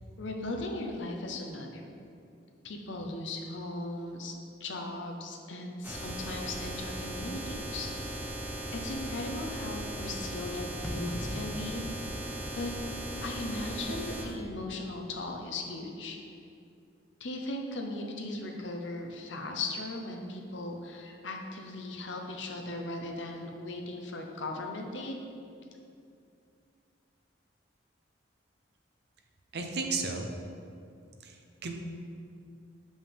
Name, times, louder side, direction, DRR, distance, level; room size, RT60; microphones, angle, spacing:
voice 1, 0.2-1.8 2.6-4.3 4.6-8.4 8.7-11.8 12.5-12.7 13.2-16.2 17.2-25.2, left 2 dB, 75° left, 2 dB, 0.8 m, -38 dB
sound 1, 5.8-14.2, right 1 dB, 10° right, 0.8 m, -38 dB
sound 2, 10.8-13.4, equal, 5° left, 0.3 m, -41 dB
voice 2, 29.5-30.3 31.2-31.7, right 4 dB, 60° right, 3 dB, 0.6 m, -34 dB
7.2 x 5.3 x 3.4 m, 2.5 s
head